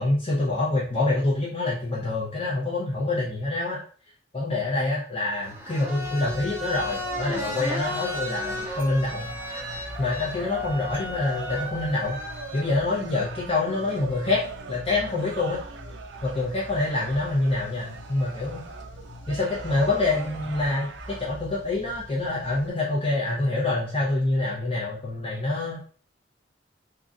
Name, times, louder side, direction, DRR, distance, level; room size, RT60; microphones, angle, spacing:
voice 1, 0.0-3.8 4.3-9.3 10.0-12.2 12.5-14.4 14.7-15.6 16.2-18.6 19.3-25.8, left 2 dB, 30° left, -6 dB, 0.7 m, -26 dB
sound 1, 5.3-12.6, left 1 dB, 10° right, 0.5 m, -35 dB
sound 2, 6.0-22.7, left 1 dB, 75° left, 0.5 m, -44 dB
sound 3, 6.8-21.2, right 5 dB, 70° right, 0.4 m, -41 dB
3.8 x 2.2 x 2.4 m, 0.42 s
head